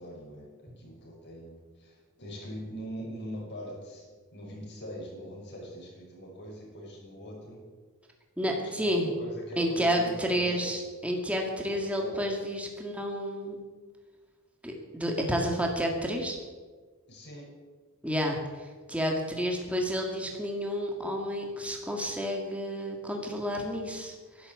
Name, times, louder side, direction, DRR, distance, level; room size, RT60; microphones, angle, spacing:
voice 1, 0.0-7.6 8.6-8.7 9.0-10.9 11.6-12.3 17.1-17.5, equal, 55° left, -2 dB, 6.1 m, -42 dB
voice 2, 8.4-9.1 9.6-13.6 14.6-16.4 18.0-24.5, equal, 5° right, 1 dB, 2.0 m, -30 dB
12.0 x 11.5 x 8.4 m, 1.4 s
head